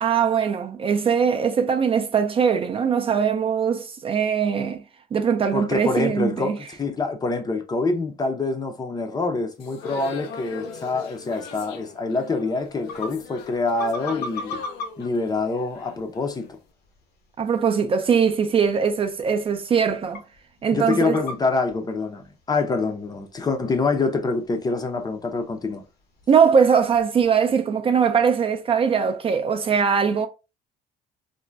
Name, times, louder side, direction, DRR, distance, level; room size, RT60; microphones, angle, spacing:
voice 1, 0.0-4.8 5.1-6.6 17.4-20.2 20.6-21.2 26.3-30.3, right 6 dB, 35° right, 0.4 m, -21 dB
voice 2, 5.5-14.6 15.0-16.6 20.7-25.8, left 3 dB, 25° left, 0.5 m, -26 dB
sound 1, 9.6-16.5, left 5 dB, 90° left, 0.5 m, -40 dB
sound 2, 12.6-27.6, left 3 dB, 70° left, 0.8 m, -42 dB
2.5 x 2.1 x 3.2 m
cardioid pair, 110°, 17 cm